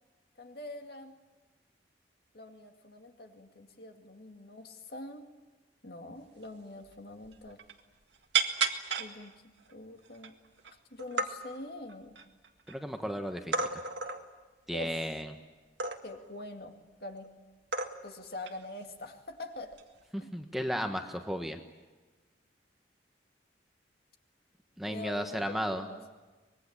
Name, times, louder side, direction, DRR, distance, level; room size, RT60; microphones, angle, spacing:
voice 1, 0.4-1.1 2.3-5.2 5.8-7.6 9.0-9.3 9.7-10.3 10.7-12.2 14.7-15.1 16.0-16.7 17.0-17.3 18.0-19.8 20.2-20.3 24.9-26.1, left 2 dB, 55° left, 4 dB, 2.2 m, -44 dB
sound 1, 6.4-6.5 6.8-7.0 7.2-7.8 8.3-9.1 9.7-9.8 10.1-10.7 11.0-11.3 11.9-12.7 13.5-14.2 15.8-16.3 17.2-17.3 17.7-18.2 18.5-18.7 19.7-20.0, right 5 dB, 75° right, 1.9 m, -32 dB
voice 2, 12.7-13.8 14.7-15.3 20.3-21.6 24.8-25.9, equal, ahead, 4 dB, 1.3 m, -34 dB
24.5 x 21.5 x 8.8 m, 1.2 s
head